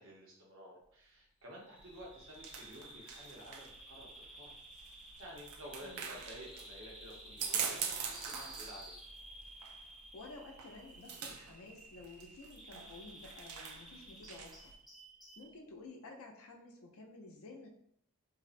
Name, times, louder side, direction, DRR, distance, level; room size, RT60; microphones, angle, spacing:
voice 1, 0.0-4.5 5.2-9.0, equal, 65° right, -2 dB, 0.8 m, -52 dB
Bird vocalization bird call bird song, 1.5-15.5, right 1 dB, ahead, 0.5 m, -54 dB
sound 1, 1.8-14.7, right 6 dB, 85° right, 0.4 m, -44 dB
voice 2, 5.8-6.1 10.1-14.7 15.4-17.7, left 3 dB, 75° left, 2 dB, 0.5 m, -52 dB
2.6 x 2.0 x 2.4 m, 0.69 s
head